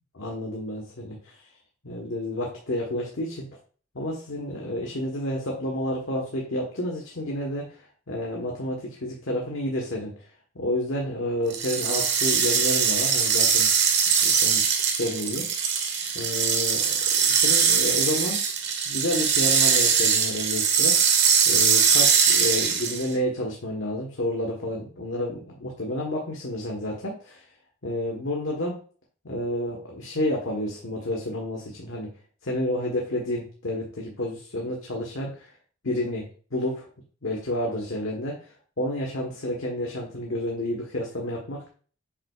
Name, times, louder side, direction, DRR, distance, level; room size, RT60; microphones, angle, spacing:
voice 1, 0.1-1.4 1.8-3.5 3.9-10.1 10.5-13.7 14.2-14.6 14.9-15.7 16.1-16.9 17.2-18.4 18.8-21.1 21.5-27.4 27.8-28.8 29.2-32.1 32.4-35.5 35.8-36.3 36.5-36.9 37.2-41.7, left 1 dB, 85° left, -1 dB, 1.3 m, -30 dB
sound 1, 11.5-23.1, right 6 dB, 60° right, 1.2 m, -22 dB
7.4 x 5.3 x 2.4 m, 0.42 s
head